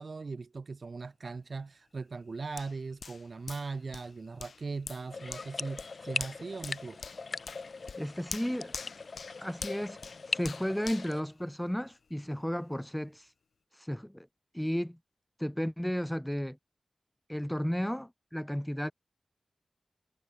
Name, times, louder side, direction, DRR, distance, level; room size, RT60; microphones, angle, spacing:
voice 1, 0.0-7.0, right 4 dB, 65° right, 2.8 m, -39 dB
Hands, 2.6-12.1 12.6-12.7, left 5 dB, 85° left, 2.2 m, -46 dB
sound 1, 5.1-11.2, left 4 dB, 65° left, 1.7 m, -40 dB
voice 2, 8.0-8.8 9.4-13.3 13.7-14.3 14.5-15.0 15.4-16.6 17.3-18.9, equal, 5° left, 1.6 m, -33 dB
wide cardioid pair, 75°, 0 cm